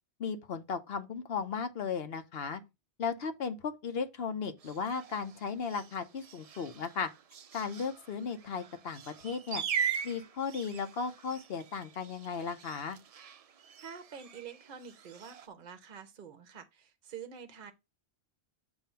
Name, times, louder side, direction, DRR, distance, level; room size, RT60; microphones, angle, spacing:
voice 1, 0.2-2.6 3.0-7.1 7.5-9.6 10.0-13.0, left 5 dB, 65° left, 0.9 m, -36 dB
sound 1, 4.6-15.5, right 7 dB, 65° right, 0.3 m, -41 dB
voice 2, 13.8-17.7, right 7 dB, 50° right, 0.8 m, -47 dB
7.5 x 2.7 x 5.4 m
omnidirectional pair, 1.1 m